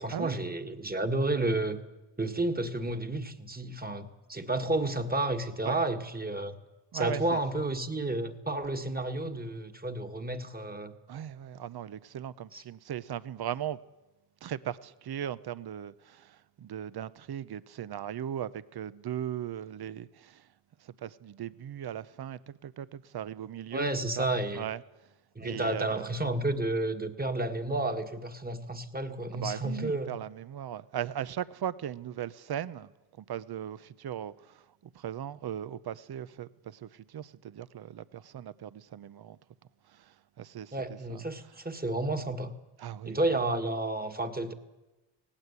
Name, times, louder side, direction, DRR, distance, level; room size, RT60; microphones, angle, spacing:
voice 1, 0.0-1.8 2.2-6.6 6.9-10.9 12.5-12.6 23.7-24.7 25.3-30.1 40.7-42.5 43.0-44.5, right 2 dB, 20° right, 1.7 m, -31 dB
voice 2, 6.9-7.4 11.1-13.8 14.4-20.5 20.8-23.9 24.2-24.3 24.5-24.8 25.4-26.0 29.3-32.9 33.2-39.4 39.8-41.2 42.8-43.2, right 10 dB, 50° right, 0.8 m, -38 dB
19.0 x 17.5 x 8.3 m
cardioid pair, 85°, 48 cm